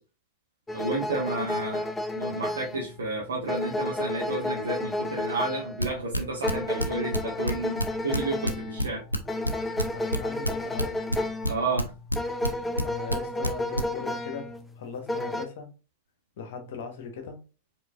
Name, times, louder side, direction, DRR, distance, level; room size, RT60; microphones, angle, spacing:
sound 1, 0.7-15.5, left 1 dB, 10° left, 0.4 m, -32 dB
voice 1, 0.7-1.8 2.1-9.0 11.5-11.9, right 2 dB, 70° right, 1.2 m, -31 dB
sound 2, 5.8-11.5 11.8-13.2 13.4-13.8, equal, 90° left, 0.5 m, -27 dB
voice 2, 9.9-11.0 12.8-15.7 16.4-17.4, left 6 dB, 55° left, 1.2 m, -39 dB
5.1 x 3.6 x 2.4 m
figure-of-eight pair, 90°, 0 cm